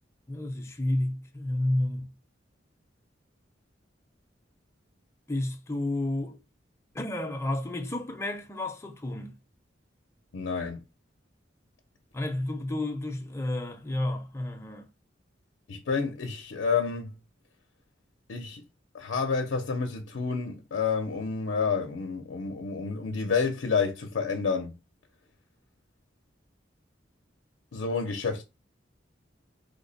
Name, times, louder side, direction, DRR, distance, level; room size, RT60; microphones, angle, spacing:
voice 1, 0.3-2.1 5.3-6.4 6.9-9.4 12.1-14.9, left 1 dB, 15° left, 0.5 m, -31 dB
voice 2, 10.3-10.8 15.7-17.1 18.3-18.6 18.9-24.8 27.7-28.4, left 5 dB, 80° left, 0.5 m, -29 dB
3.2 x 2.1 x 3.9 m
head